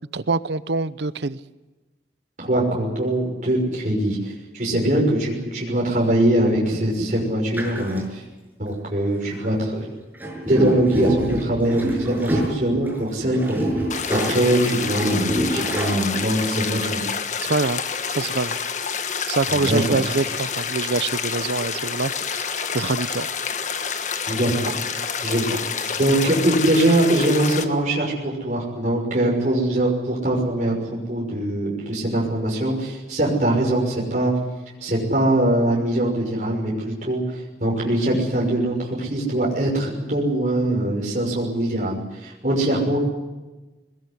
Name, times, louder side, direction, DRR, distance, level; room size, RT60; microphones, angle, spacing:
voice 1, 0.1-1.4 17.4-17.8 18.1-18.6 19.3-23.3, right 3 dB, 75° right, 16 dB, 0.8 m, -25 dB
voice 2, 2.4-8.2 8.6-9.9 10.5-13.6 14.1-17.1 19.5-20.0 24.3-24.8 25.2-25.6 26.0-30.8 31.1-34.3 34.8-43.0, right 1 dB, 45° right, -3 dB, 6.2 m, -22 dB
sound 1, 7.5-8.0 9.3-9.6 10.1-16.6, equal, 10° right, 6.5 m, -26 dB
sound 2, 13.9-27.6, left 6 dB, 45° left, 1.6 m, -28 dB
22.0 x 20.5 x 9.8 m, 1.2 s
head